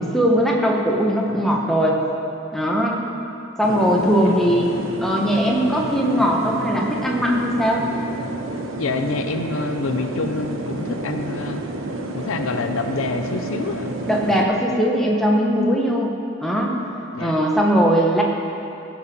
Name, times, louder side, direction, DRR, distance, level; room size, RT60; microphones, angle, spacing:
voice 1, 0.0-2.0 2.5-3.0 3.6-4.7 5.0-7.9 14.1-16.1 16.4-16.8 17.2-18.2, equal, ahead, -2 dB, 1.2 m, -19 dB
sound 1, 3.6-14.5, right 2 dB, 70° right, 0.9 m, -30 dB
voice 2, 8.8-11.6 12.1-13.9 17.1-17.3, left 3 dB, 80° left, 7 dB, 0.6 m, -27 dB
15.5 x 5.9 x 5.4 m, 2.7 s
head